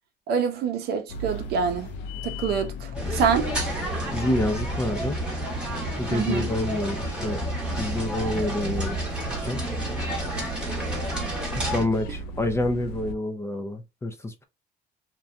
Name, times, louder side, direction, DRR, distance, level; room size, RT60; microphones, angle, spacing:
voice 1, 0.3-1.9 2.2-3.5 6.1-6.5, right 6 dB, 70° right, 0.6 m, -26 dB
sound 1, 1.1-13.2, equal, 85° left, 0.4 m, -37 dB
sound 2, 2.9-11.8, right 1 dB, 5° right, 1.0 m, -30 dB
voice 2, 4.1-5.2 6.0-7.5 7.8-9.0 9.2-9.6 11.5-14.4, left 1 dB, 15° left, 0.4 m, -28 dB
2.6 x 2.2 x 2.5 m
cardioid pair, 110°, 17 cm